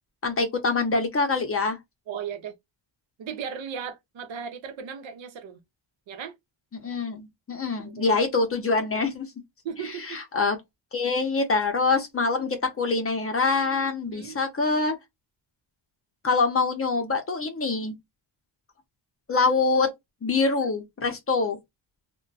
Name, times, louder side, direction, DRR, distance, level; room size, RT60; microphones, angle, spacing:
voice 1, 0.2-1.8 6.7-9.3 9.8-10.6 10.9-15.0 16.2-17.9 19.3-19.9 20.2-21.6, left 4 dB, 30° left, 0.6 m, -25 dB
voice 2, 2.1-2.5 3.2-5.6 6.1-6.3 7.8-8.0 9.6-10.2 14.0-14.4, right 7 dB, 90° right, 0.8 m, -36 dB
2.2 x 2.2 x 3.9 m
wide cardioid pair, 155°, 45 cm